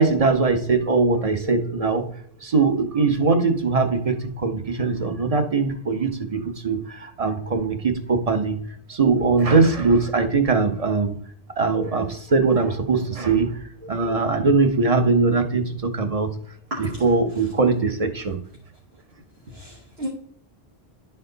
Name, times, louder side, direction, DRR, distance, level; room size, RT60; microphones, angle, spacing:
voice 1, 0.0-2.0 2.4-8.6 8.9-11.2 11.6-16.3 16.8-18.4, right 4 dB, 40° right, 0.8 m, -21 dB
voice 2, 16.7-17.0 19.5-20.1, right 1 dB, 80° right, 1.6 m, -32 dB
11.0 x 4.4 x 3.9 m
omnidirectional pair, 1.0 m